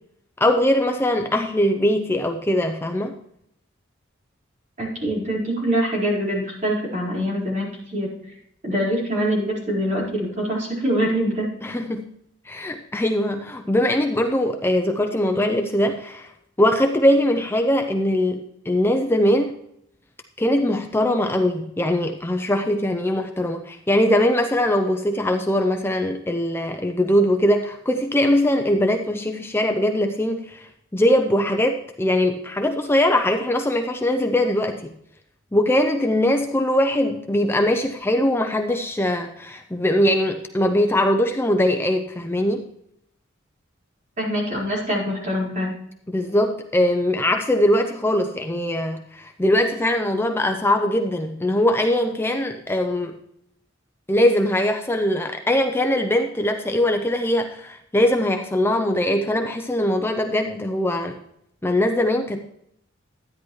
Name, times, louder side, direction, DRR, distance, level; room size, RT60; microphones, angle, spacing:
voice 1, 0.4-3.1 11.6-12.0 12.5-16.3 16.6-19.6 20.4-34.9 35.5-42.6 46.1-53.1 54.1-61.2 61.6-62.4, left 1 dB, 10° left, 5 dB, 0.6 m, -21 dB
voice 2, 4.8-8.1 8.6-11.5 44.2-45.7, equal, 40° right, -4 dB, 4.6 m, -24 dB
13.0 x 9.9 x 3.1 m, 0.73 s
head